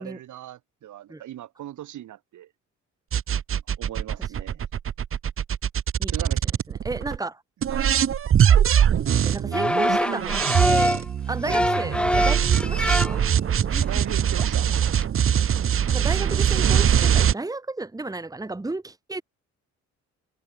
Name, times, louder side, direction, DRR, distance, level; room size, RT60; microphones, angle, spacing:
voice 1, 0.0-2.5 3.8-4.7 6.1-6.5 7.7-8.0 11.4-11.6 13.8-14.7, right 12 dB, 75° right, 3.6 m, -38 dB
sound 1, 3.1-7.2 7.6-17.3, right 9 dB, 45° right, 1.0 m, -22 dB
voice 2, 6.7-7.4 9.1-13.2 15.9-19.2, right 2 dB, 10° right, 1.7 m, -33 dB
sound 2, 9.5-11.0 11.4-13.4 13.7-14.1 14.4-14.5 14.7-15.0, left 1 dB, 5° left, 1.4 m, -24 dB
open air
cardioid pair, 90°, 30 cm